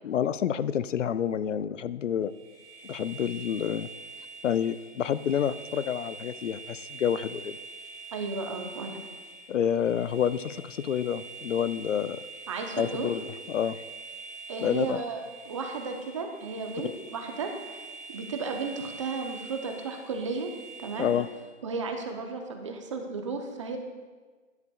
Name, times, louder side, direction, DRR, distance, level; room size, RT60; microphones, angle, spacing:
voice 1, 0.0-2.3 2.8-3.9 4.4-7.6 9.5-12.2 12.8-13.8 14.6-15.0 21.0-21.3, left 9 dB, 75° left, 15 dB, 0.5 m, -28 dB
sound 1, 2.3-21.5, right 4 dB, 60° right, 2.0 m, -45 dB
voice 2, 8.1-9.0 12.5-13.1 14.5-17.8 18.1-20.5 20.8-21.1 21.6-23.8, right 4 dB, 25° right, 4 dB, 0.7 m, -34 dB
12.5 x 10.5 x 2.3 m, 1.4 s
hypercardioid pair, 155°, 38 cm